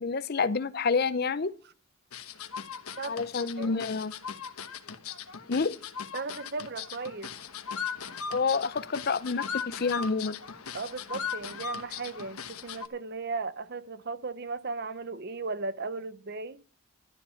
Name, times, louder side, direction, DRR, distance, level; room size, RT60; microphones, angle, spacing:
voice 1, 0.0-1.5 3.1-4.1 5.5-5.8 8.3-10.4, left 4 dB, 45° left, 0.6 m, -28 dB
sound 1, 2.1-12.9, left 6 dB, 80° left, 1.2 m, -38 dB
voice 2, 6.1-7.3 10.7-16.6, right 4 dB, 45° right, 0.7 m, -36 dB
12.5 x 10.5 x 5.6 m
head